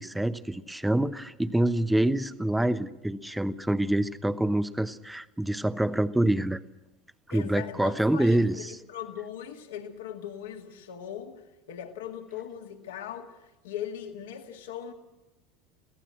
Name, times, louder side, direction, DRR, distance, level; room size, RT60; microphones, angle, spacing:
voice 1, 0.0-6.6 7.3-8.8, right 1 dB, 5° right, 13 dB, 0.9 m, -26 dB
voice 2, 7.3-11.4 11.7-13.3 13.6-14.9, left 9 dB, 70° left, 3 dB, 2.2 m, -39 dB
24.0 x 16.5 x 7.8 m, 1.0 s
figure-of-eight pair, 75°, 0 cm